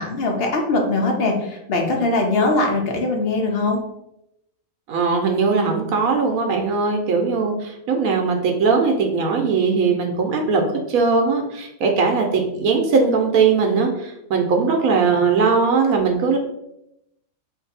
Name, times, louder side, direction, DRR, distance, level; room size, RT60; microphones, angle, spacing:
voice 1, 0.0-3.8, left 2 dB, 55° left, 1 dB, 0.8 m, -21 dB
voice 2, 4.9-16.4, right 4 dB, 85° right, 2 dB, 1.0 m, -19 dB
2.7 x 2.5 x 4.0 m, 0.82 s
omnidirectional pair, 1.5 m